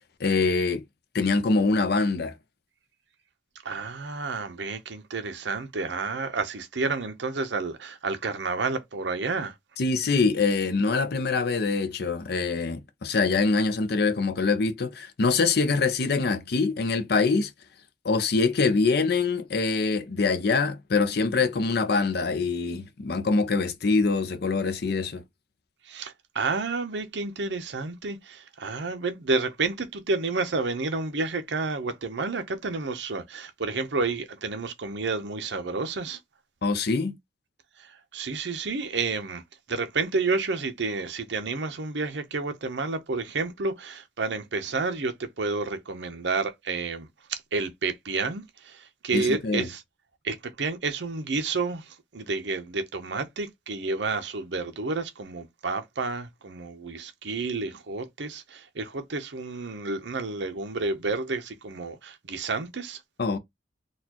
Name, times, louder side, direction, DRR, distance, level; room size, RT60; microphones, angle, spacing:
voice 1, 0.2-0.8 1.1-2.3 9.8-17.5 18.0-25.2 36.6-37.2 49.1-49.7 63.2-63.4, left 4 dB, 60° left, 0.5 m, -24 dB
voice 2, 3.6-9.5 25.9-36.2 37.8-39.4 39.7-49.8 50.2-63.0, right 3 dB, 70° right, 0.7 m, -30 dB
4.0 x 2.3 x 2.9 m
head